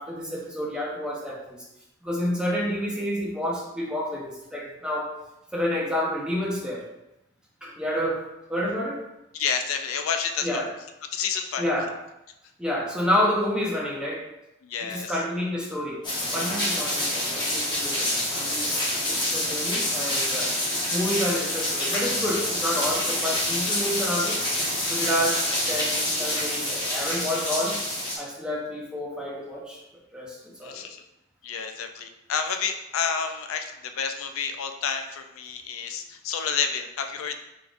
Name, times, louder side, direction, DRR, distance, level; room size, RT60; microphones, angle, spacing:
voice 1, 0.0-1.6 2.0-5.1 5.5-6.8 7.6-8.2 8.5-9.0 10.4-10.7 11.6-11.9 12.6-14.2 14.8-16.0 16.3-20.5 20.9-24.4 24.9-27.8 28.2-29.8 30.1-30.8, equal, 5° right, -4 dB, 0.7 m, -29 dB
voice 2, 9.3-10.6 11.1-11.7 14.6-15.2 30.6-31.0 31.4-37.4, left 6 dB, 90° left, 6 dB, 0.4 m, -30 dB
sound 1, 16.0-28.2, left 1 dB, 20° left, 1.1 m, -27 dB
4.6 x 3.6 x 2.5 m, 0.89 s
head